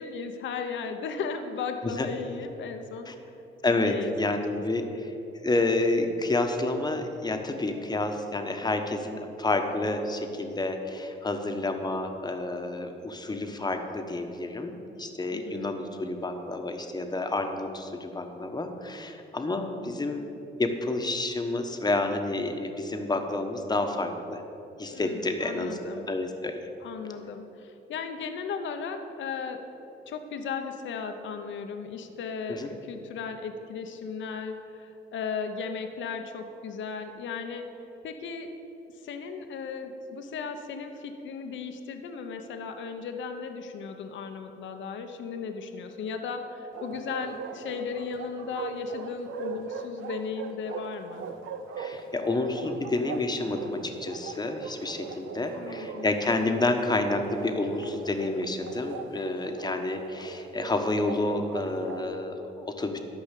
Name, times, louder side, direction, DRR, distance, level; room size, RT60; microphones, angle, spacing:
voice 1, 0.0-3.1 3.8-4.4 4.8-4.9 15.3-15.8 24.9-26.1 26.8-29.6 30.1-37.7 38.0-38.5 39.0-51.3 55.5-56.1, left 5 dB, 70° left, 6 dB, 0.9 m, -36 dB
voice 2, 3.6-5.1 5.4-20.3 20.6-24.4 24.8-25.8 26.1-26.6 32.5-32.7 51.8-63.0, left 2 dB, 20° left, 5 dB, 1.2 m, -29 dB
Bark, 46.7-62.1, right 5 dB, 80° right, 0.8 m, -40 dB
12.5 x 5.3 x 8.3 m, 2.9 s
cardioid pair, 90°, 20 cm